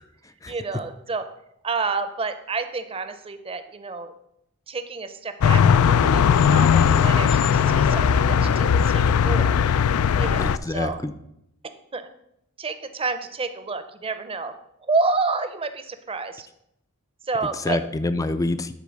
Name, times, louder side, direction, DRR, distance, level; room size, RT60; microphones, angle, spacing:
voice 1, 0.4-1.3 1.6-4.1 4.7-9.6 10.2-11.0 11.9-12.1 12.6-14.6 14.8-16.5 17.2-17.8, right 3 dB, 25° right, 10 dB, 0.6 m, -29 dB
sound 1, 5.4-10.6, left 7 dB, 85° left, 0.4 m, -18 dB
voice 2, 10.4-11.1 17.7-18.7, left 2 dB, 15° left, 11 dB, 0.3 m, -26 dB
10.0 x 4.3 x 6.4 m, 0.79 s
head